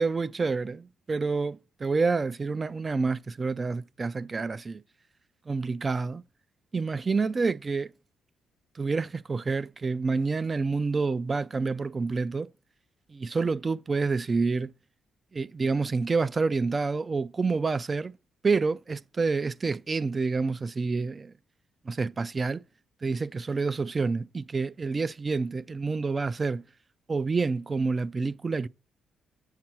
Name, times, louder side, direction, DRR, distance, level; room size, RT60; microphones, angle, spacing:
voice 1, 0.0-4.8 5.5-6.2 6.7-7.9 8.8-12.5 13.1-14.7 15.3-18.2 18.4-21.3 21.9-22.6 23.0-26.6 27.1-28.7, right 4 dB, 30° right, 0.3 m, -28 dB
7.3 x 6.7 x 4.5 m
cardioid pair, 90°, 0 cm